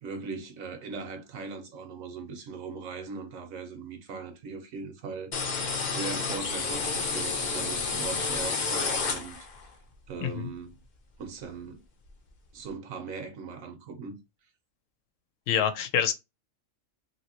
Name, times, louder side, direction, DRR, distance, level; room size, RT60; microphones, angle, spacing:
voice 1, 0.0-5.3 5.8-9.4 10.1-10.8 11.2-11.8 12.5-14.2, right 4 dB, 85° right, 1.3 m, -39 dB
sound 1, 5.3-9.7, left 4 dB, 45° left, 0.6 m, -30 dB
voice 2, 10.2-10.5 15.5-16.1, left 9 dB, 75° left, 0.9 m, -26 dB
2.9 x 2.8 x 2.8 m
omnidirectional pair, 1.4 m